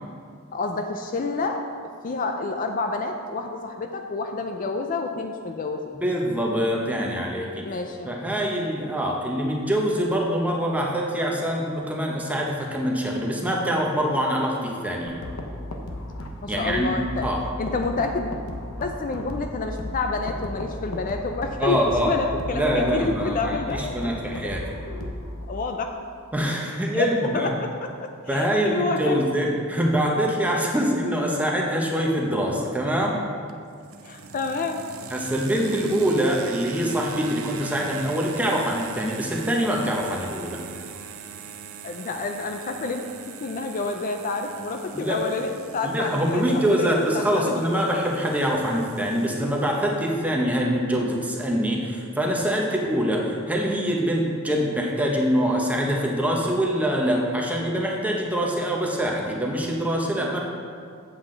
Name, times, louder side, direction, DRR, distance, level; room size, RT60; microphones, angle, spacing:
voice 1, 0.5-1.6 2.0-6.0 7.6-8.1 16.4-17.3 17.6-18.3 18.8-21.8 22.1-24.2 24.4-24.5 25.5-26.0 26.9-27.1 27.3-29.3 32.0-32.1 34.0-34.8 41.8-43.1 43.4-47.9, left 3 dB, 40° left, 5 dB, 0.4 m, -29 dB
voice 2, 5.9-7.7 8.0-15.2 16.5-17.4 21.6-22.1 22.5-24.6 26.3-27.6 28.3-33.2 35.1-40.6 44.9-45.2 45.8-60.4, equal, 5° right, -1 dB, 1.0 m, -24 dB
sound 1, 15.1-25.5, left 1 dB, 85° left, 0.9 m, -35 dB
sound 2, 33.5-50.3, right 6 dB, 85° right, 0.6 m, -41 dB
8.1 x 7.6 x 3.9 m, 2.2 s
head